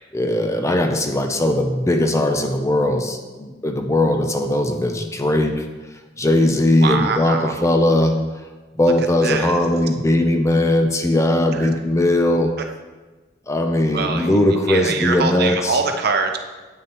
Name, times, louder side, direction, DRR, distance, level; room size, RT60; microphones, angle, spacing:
voice 1, 0.1-5.7 6.2-8.2 8.8-12.5 13.5-15.8, left 1 dB, 15° left, 5 dB, 0.5 m, -19 dB
voice 2, 6.8-7.5 9.2-9.6 11.5-11.7 13.9-14.3 14.7-16.4, right 5 dB, 55° right, 5 dB, 0.6 m, -23 dB
8.6 x 6.3 x 3.0 m, 1.2 s
head